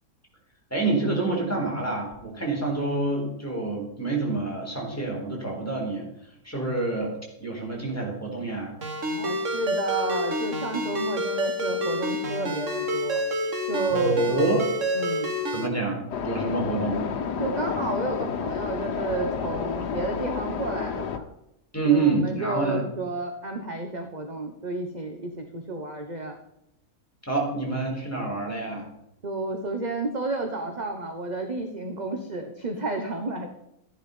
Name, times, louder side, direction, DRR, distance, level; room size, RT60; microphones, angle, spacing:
voice 1, 0.7-6.1 6.4-7.1 7.4-8.7 13.9-14.6 15.5-17.0 21.7-22.8 27.3-28.9, right 3 dB, 10° left, -1 dB, 4.1 m, -27 dB
Ringtone, 8.8-15.7, equal, 50° right, 1.9 m, -28 dB
voice 2, 9.0-13.2 13.7-14.2 14.9-15.3 17.4-21.3 21.8-26.4 29.2-33.5, right 2 dB, 30° right, 5 dB, 1.2 m, -31 dB
sound 1, 16.1-21.2, left 6 dB, 85° left, 1.6 m, -30 dB
14.0 x 10.5 x 5.5 m, 0.82 s
omnidirectional pair, 1.7 m